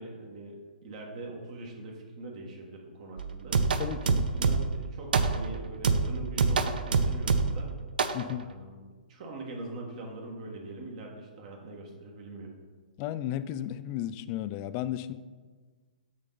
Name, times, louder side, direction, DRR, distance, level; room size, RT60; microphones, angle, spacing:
voice 1, 0.0-3.7 4.3-7.7 8.2-12.5, right 2 dB, 50° right, 0 dB, 1.4 m, -42 dB
sound 1, 3.2-4.8 5.1-5.5 5.8-7.7 8.0-8.2, right 4 dB, 80° right, 0.6 m, -26 dB
voice 2, 3.8-4.3 8.1-8.5 13.0-15.1, left 12 dB, 30° left, 14 dB, 0.3 m, -34 dB
6.5 x 6.3 x 3.9 m, 1.4 s
hypercardioid pair, 145°, 5 cm